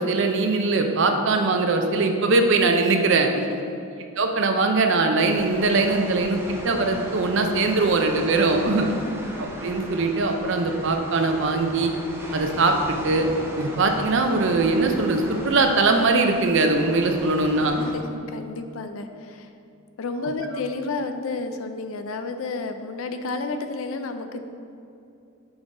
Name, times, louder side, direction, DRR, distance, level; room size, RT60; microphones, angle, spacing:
voice 1, 0.0-3.3 4.2-6.4 6.6-8.9 9.4-11.9 12.3-13.3 13.6-17.9 20.4-20.6, right 3 dB, 60° right, 4 dB, 0.6 m, -21 dB
sound 1, 5.2-17.9, equal, 10° right, 0.6 m, -37 dB
voice 2, 18.3-19.5 20.0-24.4, left 3 dB, 75° left, 8 dB, 0.5 m, -31 dB
6.1 x 3.8 x 4.8 m, 2.6 s
head